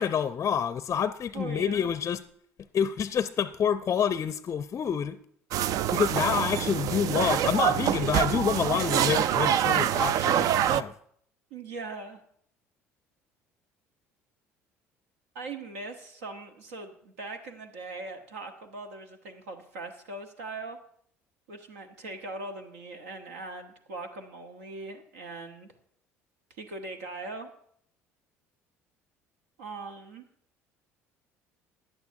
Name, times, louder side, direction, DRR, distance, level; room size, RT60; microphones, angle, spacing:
voice 1, 0.0-2.2 2.7-5.2 5.9-10.9, left 8 dB, 40° left, 13 dB, 0.5 m, -28 dB
voice 2, 1.3-1.9 11.5-12.2 15.3-20.8 21.5-25.7 26.6-27.5 29.6-30.2, right 3 dB, 75° right, 6 dB, 1.1 m, -40 dB
sound 1, 5.5-10.8, right 10 dB, 55° right, 0.4 m, -25 dB
16.0 x 10.5 x 2.7 m, 0.64 s
hypercardioid pair, 60°, 7 cm